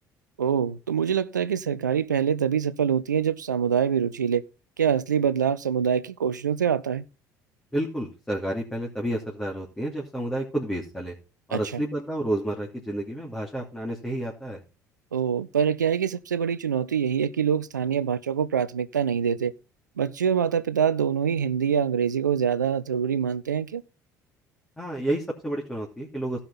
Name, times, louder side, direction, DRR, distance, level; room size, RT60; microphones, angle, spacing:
voice 1, 0.4-4.4 4.8-7.0 11.5-11.8 15.1-19.5 20.0-23.8, right 7 dB, 80° right, 0.5 m, -25 dB
voice 2, 7.7-11.1 11.5-14.6 24.8-26.4, right 1 dB, 10° left, 2.7 m, -30 dB
16.0 x 5.6 x 4.2 m
figure-of-eight pair, 60°, 10 cm